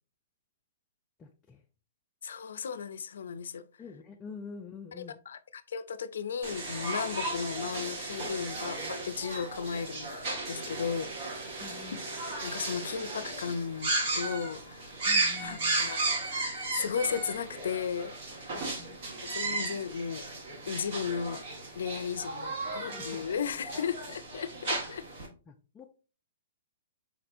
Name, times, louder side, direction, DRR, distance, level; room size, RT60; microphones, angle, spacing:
voice 1, 1.2-1.6 3.8-5.2 11.6-12.1 15.1-15.9 18.5-19.0 22.9-23.1 25.5-25.9, left 5 dB, 15° left, 0.4 m, -47 dB
voice 2, 2.2-3.7 5.0-10.2 10.5-11.1 12.4-14.9 15.4-18.5 19.2-20.3 20.7-21.4 21.7-25.1, left 6 dB, 80° left, 0.4 m, -35 dB
sound 1, 6.4-25.3, right 2 dB, 50° right, 1.5 m, -35 dB
4.3 x 4.1 x 2.5 m
hypercardioid pair, 160°, 0 cm